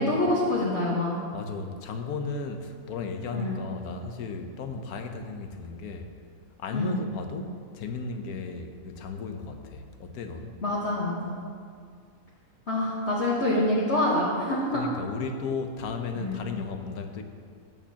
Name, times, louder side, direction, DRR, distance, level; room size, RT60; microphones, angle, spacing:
voice 1, 0.0-1.2 3.3-3.6 6.7-7.0 10.6-11.4 12.7-14.8 16.1-16.4, left 1 dB, 45° left, -7 dB, 1.5 m, -26 dB
voice 2, 1.3-6.1 6.6-10.5 14.7-17.2, left 4 dB, 70° left, 6 dB, 1.2 m, -35 dB
14.0 x 8.4 x 2.9 m, 2.1 s
omnidirectional pair, 1.7 m